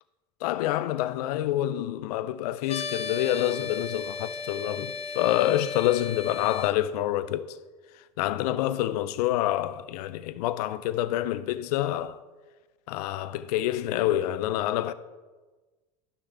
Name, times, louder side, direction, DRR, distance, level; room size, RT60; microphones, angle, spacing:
voice 1, 0.4-7.6 8.2-12.2 12.9-14.9, left 13 dB, 70° left, 0.5 m, -27 dB
sound 1, 2.7-6.7, left 4 dB, 30° left, 0.7 m, -35 dB
11.5 x 6.3 x 3.4 m
hypercardioid pair, 80°, 21 cm